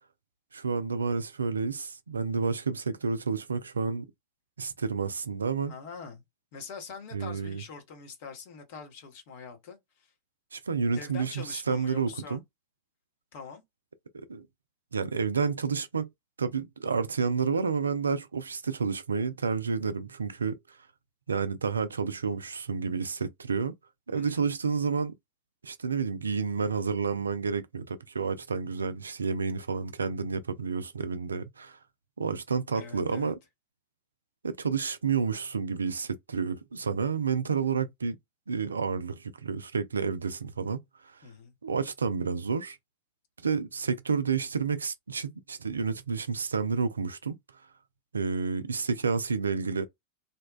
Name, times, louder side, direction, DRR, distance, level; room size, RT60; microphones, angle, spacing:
voice 1, 0.5-4.1 4.6-5.7 7.1-7.6 10.5-12.4 14.3-14.5 14.9-16.1 16.4-20.6 21.3-23.7 24.1-25.1 25.6-31.8 32.2-33.4 34.4-38.2 38.5-40.8 41.1-41.2 41.6-42.8 43.4-47.4 48.1-49.9, right 5 dB, 75° right, 0.3 m, -30 dB
voice 2, 5.7-6.2 6.5-10.1 10.9-12.4 13.3-13.6 24.1-24.4 32.7-33.3 41.2-41.5, left 5 dB, 50° left, 0.9 m, -44 dB
2.7 x 2.1 x 2.2 m
figure-of-eight pair, 90°, 0 cm